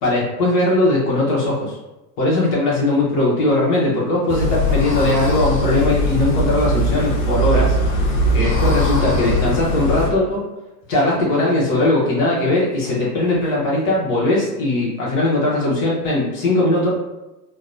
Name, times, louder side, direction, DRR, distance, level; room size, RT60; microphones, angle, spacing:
voice 1, 0.0-1.8 2.2-10.4 10.9-16.9, left 2 dB, 50° left, -5 dB, 1.0 m, -19 dB
sound 1, 4.3-10.1, equal, 80° left, 0.7 m, -20 dB
2.9 x 2.1 x 2.5 m, 1.0 s
hypercardioid pair, 90°, 49 cm